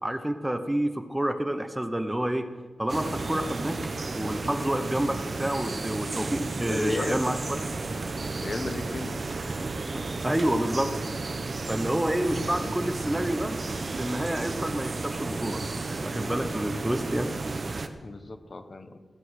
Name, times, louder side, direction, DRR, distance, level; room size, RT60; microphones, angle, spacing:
voice 1, 0.0-2.5 2.8-3.8 4.2-7.6 9.9-10.9 11.7-13.6 14.0-15.6 15.9-17.3, right 1 dB, 10° right, 9 dB, 0.8 m, -28 dB
sound 1, 2.9-17.9, right 3 dB, 40° right, 0.8 m, -33 dB
voice 2, 6.7-7.4 8.4-9.1 18.0-19.0, left 2 dB, 35° left, 9 dB, 1.0 m, -34 dB
15.5 x 9.5 x 6.4 m, 1.4 s
wide cardioid pair, 170°, 0 cm